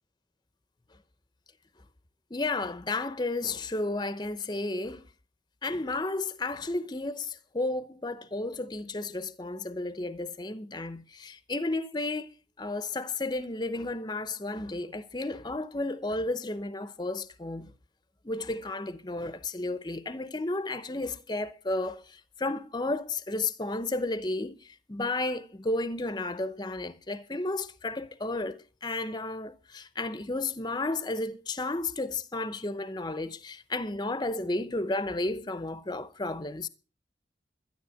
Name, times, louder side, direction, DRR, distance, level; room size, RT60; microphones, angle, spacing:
voice 1, 2.3-5.0 5.6-12.3 12.6-17.7 18.2-36.7, left 2 dB, 25° left, 0.7 m, -33 dB
12.5 x 11.0 x 6.3 m
head